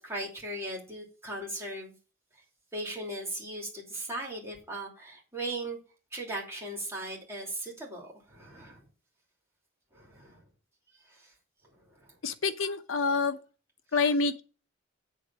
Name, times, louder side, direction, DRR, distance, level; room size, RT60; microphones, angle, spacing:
voice 1, 0.0-1.9 2.7-5.8 6.1-8.9 9.9-10.4 11.1-11.3 11.7-12.2, right 1 dB, 15° right, 2.9 m, -38 dB
voice 2, 12.2-13.4 13.9-14.4, left 4 dB, 85° left, 0.8 m, -27 dB
8.5 x 3.8 x 6.3 m
head